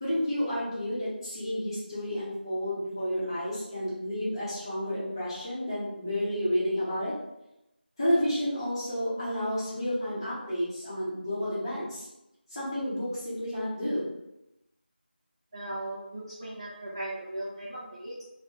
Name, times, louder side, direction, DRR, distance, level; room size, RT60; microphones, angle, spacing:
voice 1, 0.0-7.1 8.0-12.1 12.5-14.1, equal, 20° left, -12 dB, 0.8 m, -31 dB
voice 2, 15.5-18.2, right 1 dB, 30° right, -8 dB, 0.4 m, -37 dB
2.6 x 2.0 x 3.1 m, 0.90 s
figure-of-eight pair, 175°, 6 cm